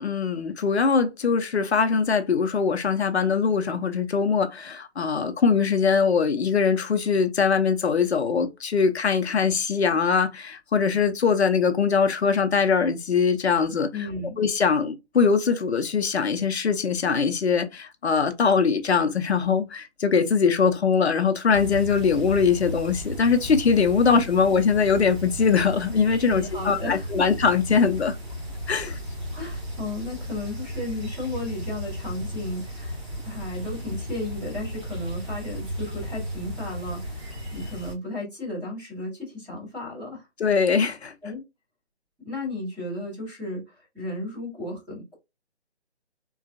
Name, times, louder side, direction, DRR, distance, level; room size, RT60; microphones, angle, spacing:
voice 1, 0.0-13.9 14.4-28.1 28.7-29.0 40.4-41.1, left 5 dB, 65° left, 0.6 m, -22 dB
voice 2, 13.9-14.4 26.3-27.3 29.3-33.0 33.2-40.3 41.2-41.4 42.2-45.1, left 2 dB, ahead, 0.7 m, -34 dB
sound 1, 21.5-37.9, equal, 25° right, 1.5 m, -35 dB
3.7 x 2.3 x 2.5 m
figure-of-eight pair, 150°, 35 cm